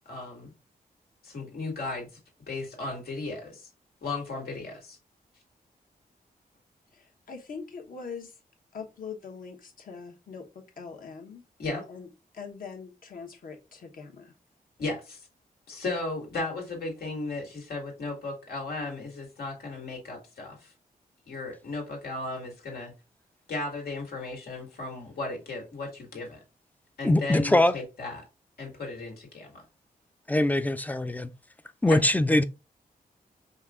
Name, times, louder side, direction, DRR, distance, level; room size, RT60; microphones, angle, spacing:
voice 1, 0.1-0.5 1.2-2.1 2.5-3.7 4.0-5.0 11.6-11.8 14.8-15.3 15.7-20.7 21.3-22.9 23.5-26.4 27.0-28.2 28.6-29.6 31.9-32.0, left 3 dB, 90° left, 1.9 m, -35 dB
voice 2, 6.9-8.4 8.7-11.4 11.9-12.1 12.3-14.3, left 5 dB, 65° left, 1.2 m, -42 dB
voice 3, 27.0-27.8 30.3-31.3 31.8-32.4, left 1 dB, 10° left, 0.3 m, -22 dB
5.4 x 2.5 x 3.6 m
wide cardioid pair, 140°, 15 cm